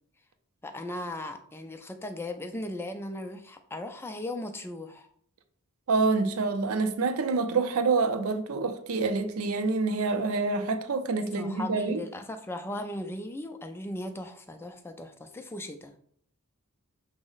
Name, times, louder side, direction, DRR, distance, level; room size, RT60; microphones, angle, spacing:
voice 1, 0.6-5.1 11.3-15.9, left 1 dB, 10° left, 0.3 m, -37 dB
voice 2, 5.9-12.0, right 4 dB, 65° right, 0.5 m, -27 dB
5.9 x 2.1 x 3.8 m
head